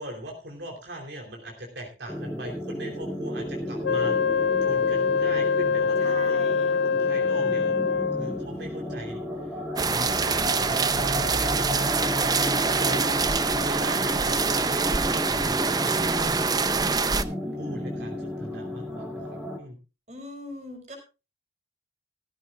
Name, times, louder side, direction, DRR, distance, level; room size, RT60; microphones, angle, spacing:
voice 1, 0.0-9.2 9.8-12.3 12.7-16.4 17.6-19.2 19.6-19.8, equal, 75° right, 1 dB, 3.2 m, -40 dB
sound 1, 2.1-19.6, equal, ahead, 2.4 m, -33 dB
Wind instrument woodwind instrument, 3.8-8.5, left 5 dB, 75° left, 0.5 m, -24 dB
voice 2, 6.0-6.9 13.0-13.5 20.1-21.0, equal, 40° right, 4 dB, 4.7 m, -40 dB
sound 2, 9.8-17.2, right 4 dB, 20° right, 0.6 m, -25 dB
16.5 x 14.0 x 2.4 m, 0.30 s
head